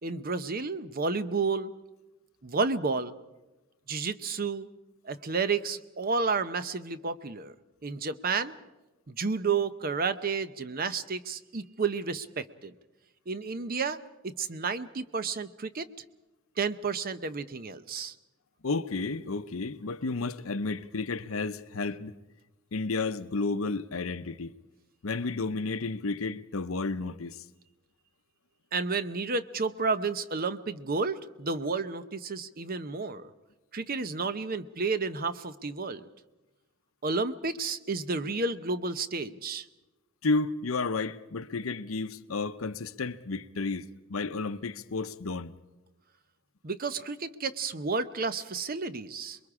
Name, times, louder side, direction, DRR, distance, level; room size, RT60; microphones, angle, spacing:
voice 1, 0.0-1.7 2.4-3.1 3.9-4.7 5.0-7.5 7.8-8.6 9.1-12.7 13.3-14.0 14.2-15.9 16.6-18.1 28.7-33.3 33.7-36.1 37.0-39.7 46.6-49.4, right 4 dB, 45° right, 0.8 m, -31 dB
voice 2, 18.6-22.1 22.7-24.5 25.0-27.4 40.2-45.5, left 3 dB, 85° left, 0.8 m, -32 dB
27.0 x 22.0 x 4.9 m
head